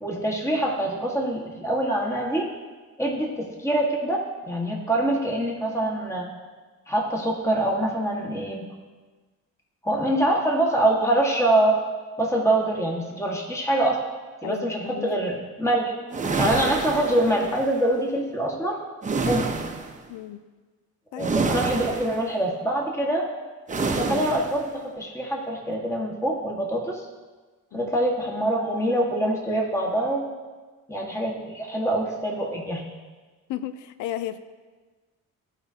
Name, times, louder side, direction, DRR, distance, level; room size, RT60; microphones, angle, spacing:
voice 1, 0.0-2.5 3.0-4.2 4.5-6.3 6.9-8.6 9.8-11.8 12.2-14.0 14.4-15.9 16.4-18.8 19.2-19.6 21.2-23.2 24.0-27.1 27.7-30.3 30.9-32.8, right 1 dB, 10° left, -2 dB, 1.7 m, -24 dB
voice 2, 14.4-15.2 20.1-20.4 21.1-21.3 27.7-27.9 33.5-34.4, left 12 dB, 80° left, 12 dB, 0.5 m, -34 dB
sound 1, 16.1-17.7 19.0-20.0 21.2-22.3 23.7-24.6, right 4 dB, 25° right, 0.8 m, -27 dB
14.0 x 5.0 x 2.8 m, 1.3 s
cardioid pair, 90°, 30 cm